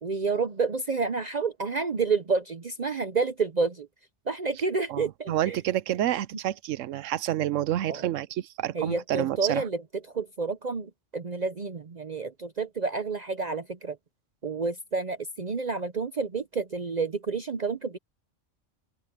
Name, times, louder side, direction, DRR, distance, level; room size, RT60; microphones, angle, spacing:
voice 1, 0.0-3.9 4.3-5.6 7.9-8.1 8.7-9.8 10.1-14.0 14.4-18.0, right 4 dB, 40° right, 0.7 m, -29 dB
voice 2, 4.9-9.6, right 12 dB, 90° right, 1.0 m, -29 dB
open air
omnidirectional pair, 1.3 m